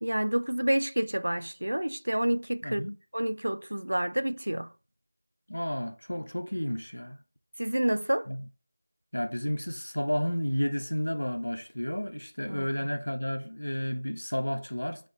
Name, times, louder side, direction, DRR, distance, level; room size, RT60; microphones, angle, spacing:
voice 1, 0.0-4.7 7.6-8.3 12.5-12.7, right 1 dB, 80° right, 0.5 m, -29 dB
voice 2, 2.6-3.0 5.5-7.2 8.3-8.4 9.1-15.1, equal, 85° left, 1.2 m, -31 dB
6.6 x 5.0 x 3.9 m
figure-of-eight pair, 175°, 0 cm